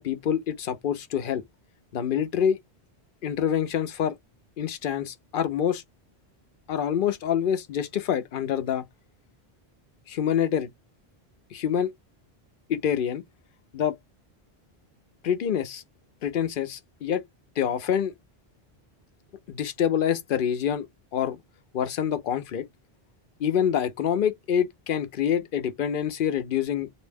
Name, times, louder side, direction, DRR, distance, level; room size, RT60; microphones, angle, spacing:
voice 1, 0.0-1.4 1.9-2.6 3.2-4.1 4.6-5.8 6.7-8.8 10.1-10.7 11.5-11.9 12.7-13.2 13.7-14.0 15.2-15.8 16.2-17.2 17.6-18.1 19.5-20.9 21.1-21.4 21.7-22.7 23.4-26.9, left 9 dB, 60° left, 0.7 m, -26 dB
2.7 x 2.0 x 3.3 m
omnidirectional pair, 1.0 m